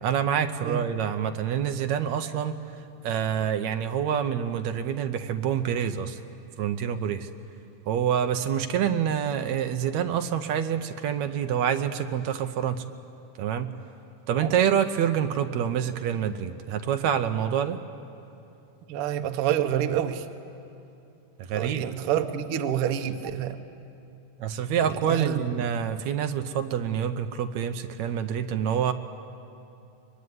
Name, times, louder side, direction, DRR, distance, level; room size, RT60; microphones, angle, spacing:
voice 1, 0.0-2.6 3.0-6.2 6.6-7.3 7.9-12.9 13.4-13.7 14.3-17.8 21.4-21.8 24.4-28.9, right 8 dB, 75° right, 7 dB, 1.8 m, -27 dB
voice 2, 18.9-20.2 21.5-23.6 24.8-25.4, right 10 dB, 90° right, 8 dB, 1.2 m, -28 dB
23.5 x 22.5 x 9.5 m, 2.7 s
omnidirectional pair, 4.0 m